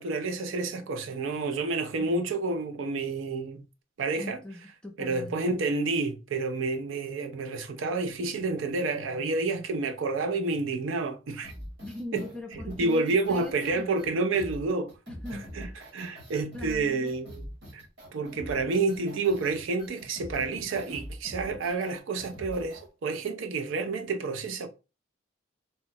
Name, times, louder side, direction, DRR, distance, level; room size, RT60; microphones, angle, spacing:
voice 1, 0.0-3.6 4.0-4.4 5.0-11.5 12.1-12.2 12.7-14.9 15.3-17.5 17.7-17.8 18.1-24.7, right 3 dB, 85° right, 0.4 m, -29 dB
voice 2, 4.2-5.4 11.8-13.9 15.1-15.5 16.5-17.2, left 1 dB, 5° left, 0.5 m, -41 dB
sound 1, 11.4-22.9, equal, 60° right, 1.2 m, -44 dB
3.0 x 2.0 x 2.6 m
head